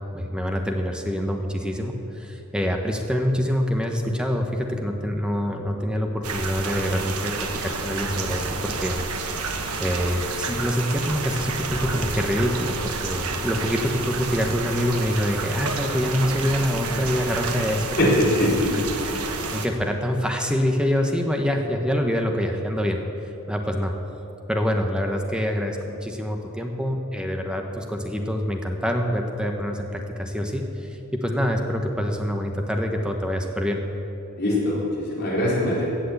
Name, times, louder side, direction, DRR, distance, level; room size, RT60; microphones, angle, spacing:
voice 1, 0.1-18.1 18.7-23.0 23.5-23.9 24.5-33.8, equal, 5° right, 3 dB, 1.0 m, -26 dB
sound 1, 6.2-19.7, right 4 dB, 85° right, 1.2 m, -30 dB
voice 2, 18.0-18.7 19.1-19.2 34.3-35.8, left 1 dB, 45° left, -6 dB, 3.8 m, -22 dB
16.0 x 6.4 x 8.4 m, 2.9 s
head